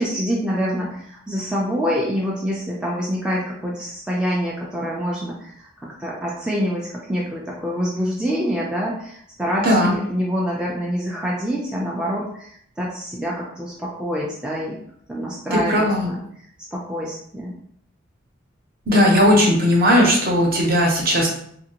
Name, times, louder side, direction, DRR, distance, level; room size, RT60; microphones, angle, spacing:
voice 1, 0.0-14.8 15.1-16.2 16.7-17.5, equal, 5° right, -5 dB, 0.3 m, -26 dB
voice 2, 9.6-9.9 15.5-16.1 18.9-21.3, equal, 45° right, -2 dB, 0.8 m, -17 dB
2.9 x 2.5 x 2.8 m, 0.66 s
head